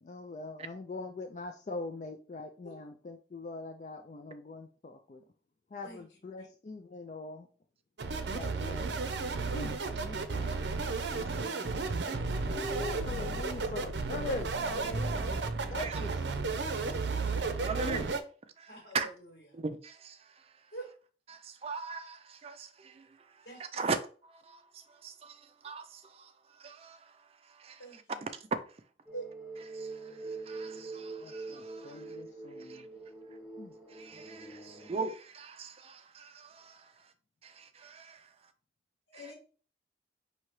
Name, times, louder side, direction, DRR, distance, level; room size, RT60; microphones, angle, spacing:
voice 1, 0.0-5.2 5.7-7.5 8.3-9.0 9.5-9.7 10.0-10.6 10.8-11.8 12.5-15.4 15.7-16.6 17.8-18.1 31.2-32.8 33.6-33.7 34.1-34.2, left 2 dB, 40° left, 0.4 m, -42 dB
sound 1, 8.0-18.2, right 3 dB, 80° right, 0.6 m, -33 dB
voice 2, 17.6-18.2 18.6-19.1 19.5-20.2 21.3-22.9 23.6-24.0 24.5-24.6 25.0-25.4 25.6-26.0 26.6-27.0 27.6-27.8 28.2-28.3 29.8-29.9 30.5-32.0 32.7-32.8 34.0-36.7 37.4-38.2 39.1-39.2, right 4 dB, 35° right, 0.4 m, -39 dB
voice 3, 18.7-19.4 20.7-20.9 23.4-23.9 27.8-28.2 29.1-29.3 39.1-39.3, right 2 dB, 80° left, 1.7 m, -45 dB
sound 2, 29.1-35.0, right 3 dB, 5° right, 1.0 m, -44 dB
5.7 x 2.8 x 3.1 m
head